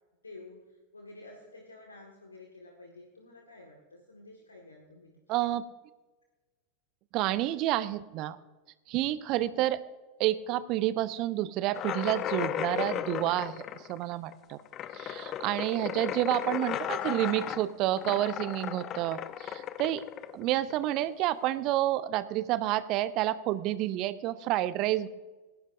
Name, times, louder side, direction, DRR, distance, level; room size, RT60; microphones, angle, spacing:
voice 1, 0.2-5.6 15.7-16.1 20.5-20.8, left 2 dB, 75° left, 2 dB, 1.8 m, -51 dB
voice 2, 5.3-5.6 7.1-8.4 8.9-9.8 10.2-14.6 14.9-20.0 20.3-25.1, right 14 dB, 40° right, 16 dB, 0.7 m, -29 dB
sound 1, 11.7-21.1, left 11 dB, 35° left, 0.7 m, -35 dB
19.0 x 17.5 x 2.6 m, 1.2 s
figure-of-eight pair, 90°, 0 cm